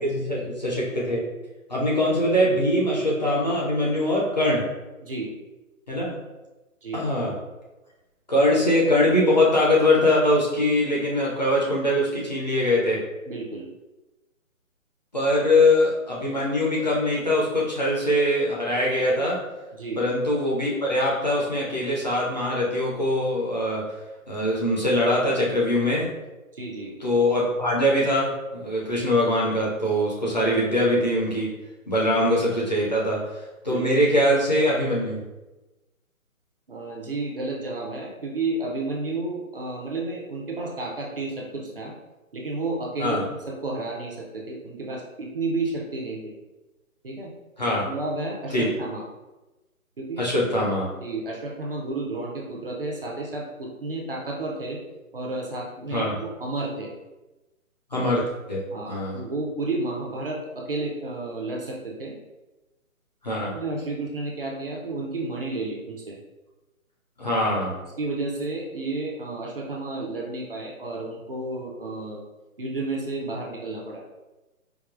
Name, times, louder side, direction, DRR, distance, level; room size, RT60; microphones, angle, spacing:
voice 1, 0.0-1.2 1.7-4.7 5.9-6.1 6.9-7.3 8.3-13.0 15.1-19.4 20.0-23.8 24.3-26.1 27.0-28.3 28.6-31.5 31.9-33.2 33.6-35.2 43.0-43.2 47.6-47.8 48.5-48.7 50.2-50.9 55.9-56.2 57.9-58.6 58.9-59.2 63.2-63.5 67.2-67.7, left 1 dB, 30° left, -5 dB, 0.5 m, -22 dB
voice 2, 13.3-13.7 19.7-20.0 26.5-27.0 33.7-33.8 36.7-41.9 42.3-46.3 47.0-47.3 47.7-49.0 50.0-50.2 51.0-54.8 55.1-56.9 58.7-62.2 63.5-66.2 68.0-72.3 72.6-74.0, right 2 dB, 40° right, -2 dB, 0.5 m, -31 dB
4.7 x 2.0 x 2.4 m, 1.1 s
figure-of-eight pair, 150°, 43 cm